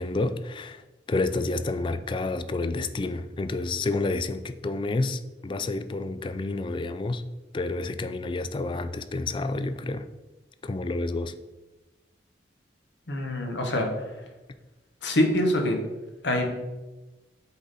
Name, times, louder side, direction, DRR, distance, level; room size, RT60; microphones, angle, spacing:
voice 1, 0.0-7.2 7.5-10.1 10.6-11.3, left 2 dB, 25° left, 11 dB, 0.3 m, -29 dB
voice 2, 13.1-14.1 15.0-15.8 16.2-16.5, left 1 dB, 75° left, 3 dB, 1.2 m, -25 dB
8.3 x 3.8 x 4.1 m, 1.1 s
head